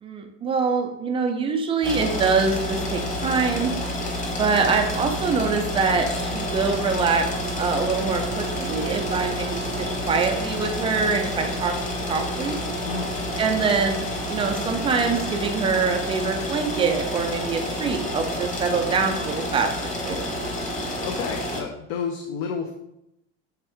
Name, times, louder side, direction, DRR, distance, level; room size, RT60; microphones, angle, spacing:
voice 1, 0.0-3.7 4.4-7.3 7.5-11.7 12.1-12.6 13.4-20.3, right 5 dB, 15° right, 4 dB, 0.3 m, -24 dB
sound 1, 1.8-21.6, left 1 dB, 20° left, 1.1 m, -29 dB
voice 2, 12.8-13.2 20.8-22.7, left 6 dB, 65° left, 4 dB, 0.8 m, -31 dB
8.9 x 3.5 x 3.5 m, 0.83 s
supercardioid pair, 160°, 35 cm